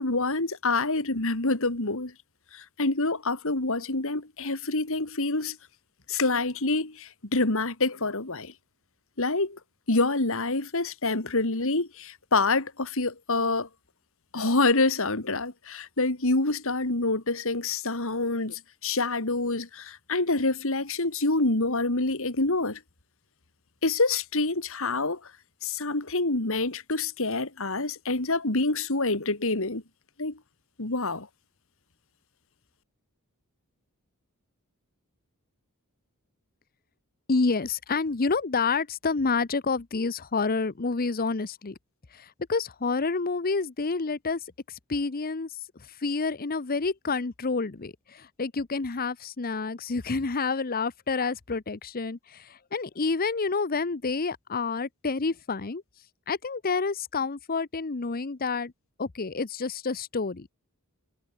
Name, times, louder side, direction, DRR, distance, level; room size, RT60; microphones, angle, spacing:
voice 1, 0.0-2.1 2.5-5.6 6.1-8.5 9.2-9.6 9.9-13.7 14.3-22.8 23.8-25.3 25.6-29.8 30.2-30.4 30.8-31.3, left 3 dB, 65° left, 2.7 m, -27 dB
voice 2, 37.3-41.8 42.1-44.4 44.9-45.5 46.0-55.8 56.3-58.7 59.0-60.5, left 4 dB, 40° left, 0.8 m, -28 dB
head